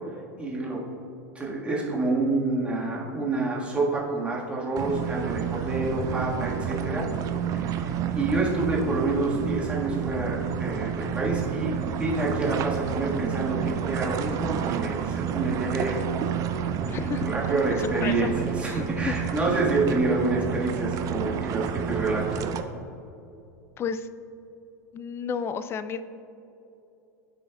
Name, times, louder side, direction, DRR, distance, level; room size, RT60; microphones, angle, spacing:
voice 1, 0.4-0.8 1.3-7.1 7.5-16.0 17.2-22.4, right 2 dB, 10° right, -5 dB, 1.6 m, -28 dB
sound 1, 4.8-22.6, right 8 dB, 40° right, 0.5 m, -30 dB
voice 2, 16.8-17.3 17.6-18.3 18.6-19.1 23.8-24.1 24.9-26.0, left 7 dB, 25° left, 13 dB, 0.4 m, -32 dB
12.5 x 5.1 x 2.4 m, 2.8 s
figure-of-eight pair, 85°, 9 cm